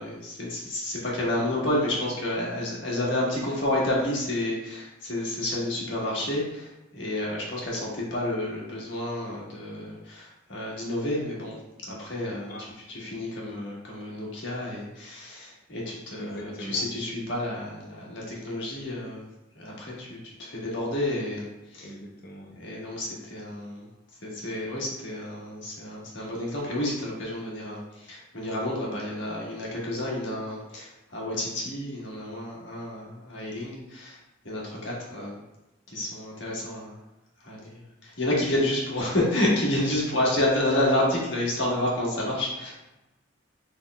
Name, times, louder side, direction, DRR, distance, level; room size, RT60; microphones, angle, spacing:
voice 1, 0.0-11.5 11.9-12.5 12.9-19.2 19.5-21.5 21.7-21.9 22.6-23.8 24.2-34.2 34.4-35.4 35.9-36.9 37.4-42.7, left 1 dB, 65° left, -4 dB, 1.3 m, -30 dB
voice 2, 16.2-16.8 21.8-22.6 40.1-40.2, equal, 50° left, 1 dB, 0.6 m, -40 dB
6.1 x 3.5 x 2.2 m, 0.97 s
head